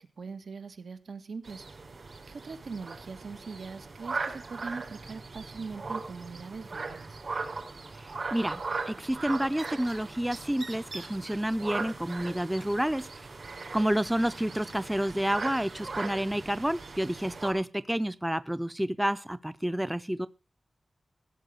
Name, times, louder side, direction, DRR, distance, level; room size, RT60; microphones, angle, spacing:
voice 1, 0.0-1.6 2.3-7.2, right 4 dB, 80° right, 9 dB, 1.6 m, -41 dB
sound 1, 1.4-17.5, right 3 dB, 55° right, 3.9 m, -39 dB
voice 2, 8.0-8.6 8.9-13.3 13.7-20.3, right 1 dB, 5° right, 15 dB, 0.5 m, -29 dB
16.0 x 7.4 x 6.3 m, 0.33 s
wide cardioid pair, 125°, 0 cm